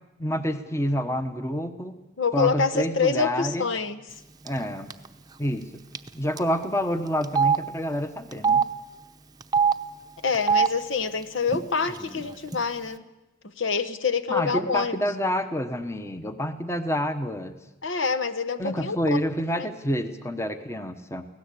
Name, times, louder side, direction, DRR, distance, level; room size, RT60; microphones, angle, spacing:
voice 1, 0.2-1.9 2.3-3.7 4.4-4.9 5.4-5.7 6.2-8.6 14.3-17.6 18.6-21.3, equal, 15° left, 9 dB, 1.0 m, -28 dB
voice 2, 2.2-4.0 10.2-13.0 13.6-15.0 17.8-19.0 19.5-19.7, left 5 dB, 65° left, 8 dB, 1.2 m, -26 dB
Telephone, 4.5-4.6 4.9-5.1 5.9-6.1 6.4-6.5 7.2-7.6 8.3-8.6 9.4-9.7 10.3-10.7 11.5-11.6 11.9-12.6, right 6 dB, 20° right, 0.8 m, -22 dB
24.5 x 17.5 x 8.5 m, 1.0 s
head